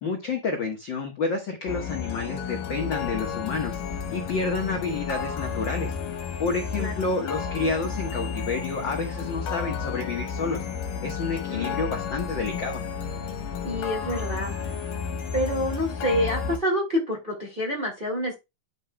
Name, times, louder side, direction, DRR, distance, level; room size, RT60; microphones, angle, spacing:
voice 1, 0.0-3.8 4.1-5.9 6.4-10.6 11.0-12.8, left 4 dB, 60° left, 1.2 m, -29 dB
sound 1, 1.7-16.6, left 6 dB, 75° left, 3.1 m, -32 dB
voice 2, 11.5-11.9 13.6-14.6 15.3-18.4, equal, 20° right, 1.6 m, -27 dB
10.5 x 5.6 x 2.2 m
omnidirectional pair, 4.0 m